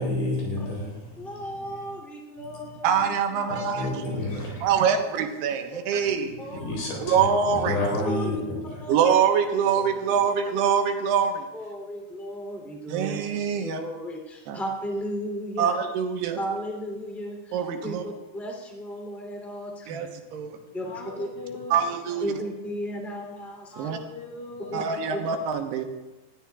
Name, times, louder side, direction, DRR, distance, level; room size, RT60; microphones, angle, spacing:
voice 1, 0.0-1.8 2.4-2.7 3.7-4.8 6.4-8.8, left 1 dB, 85° left, -2 dB, 6.3 m, -30 dB
voice 2, 1.2-3.0 3.3-4.2 5.0-5.1 5.7-6.0 6.4-6.8 8.0-8.4 8.8-9.1 9.8-9.9 11.5-13.1 13.5-15.7 16.4-20.1 20.7-21.3 22.2-23.9 24.7-24.8 25.1-25.2, equal, ahead, 1 dB, 1.7 m, -35 dB
voice 3, 2.8-4.0 4.6-6.4 7.0-7.8 8.9-11.5 12.9-13.8 14.5-14.6 15.6-16.4 17.5-18.0 19.9-20.6 21.7-22.2 23.8-24.0 24.7-25.9, right 7 dB, 75° right, 5 dB, 3.2 m, -24 dB
voice 4, 20.9-21.8 22.1-22.2 23.7-25.0, left 3 dB, 55° left, 1 dB, 2.3 m, -40 dB
20.0 x 13.5 x 3.5 m, 1.1 s
omnidirectional pair, 4.9 m